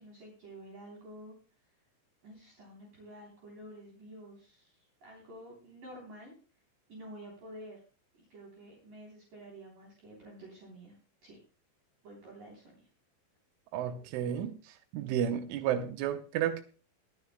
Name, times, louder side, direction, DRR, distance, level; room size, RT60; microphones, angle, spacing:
voice 1, 0.0-1.4 2.2-6.3 6.9-7.8 8.2-11.0 11.2-11.4 12.0-12.9, right 1 dB, 45° right, 4.7 m, -50 dB
voice 2, 13.7-14.6 14.9-16.6, right 9 dB, 90° right, 3.3 m, -32 dB
23.5 x 9.9 x 2.2 m
omnidirectional pair, 5.6 m